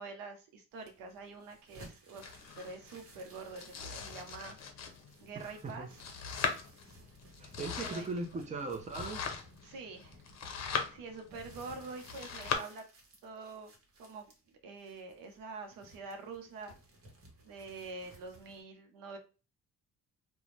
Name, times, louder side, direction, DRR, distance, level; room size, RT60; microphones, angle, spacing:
voice 1, 0.0-4.8 5.2-6.0 7.8-8.1 9.6-10.2 10.9-12.8 13.2-13.7 14.0-14.3 14.6-16.7 17.4-19.2, right 4 dB, 90° right, 0.8 m, -46 dB
sound 1, 0.7-18.6, right 1 dB, 45° right, 1.1 m, -58 dB
Domestic sounds home sounds, 2.2-12.6, left 6 dB, 55° left, 0.7 m, -41 dB
voice 2, 5.3-5.9 7.4-9.3, right 3 dB, 20° right, 0.6 m, -39 dB
2.5 x 2.2 x 3.1 m
cardioid pair, 90°, 33 cm